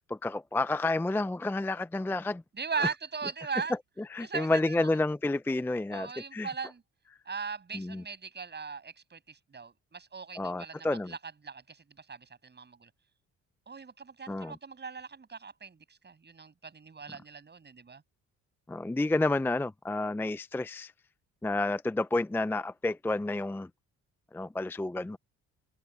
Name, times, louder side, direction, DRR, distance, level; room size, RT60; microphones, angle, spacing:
voice 1, 0.1-2.4 4.1-6.5 7.7-8.0 10.4-11.1 14.3-14.5 18.7-20.9 21.4-23.7 24.3-25.2, left 2 dB, 5° left, 0.5 m, -30 dB
voice 2, 2.5-3.8 4.2-4.8 5.9-6.8 7.3-12.9 13.7-18.0, right 5 dB, 35° right, 6.8 m, -39 dB
open air
cardioid pair, 90°, 30 cm